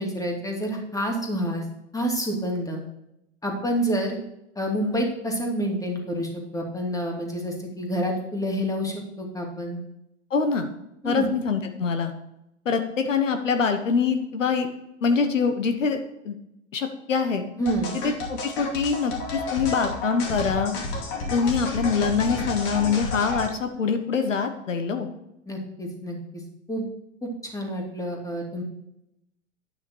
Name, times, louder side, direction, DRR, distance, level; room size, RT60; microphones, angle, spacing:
voice 1, 0.0-1.6 1.9-2.8 3.4-4.2 4.6-9.8 11.0-11.3 17.6-17.9 25.5-26.4 26.7-26.9 27.2-28.6, equal, 10° left, 1 dB, 2.6 m, -28 dB
voice 2, 10.3-10.7 11.0-12.1 12.6-14.7 15.0-16.3 16.7-17.4 18.0-20.7 21.3-25.1, left 5 dB, 85° left, 6 dB, 1.3 m, -24 dB
sound 1, 17.7-23.5, left 3 dB, 50° left, 2.6 m, -31 dB
11.0 x 6.0 x 4.6 m, 0.84 s
hypercardioid pair, 95°, 37 cm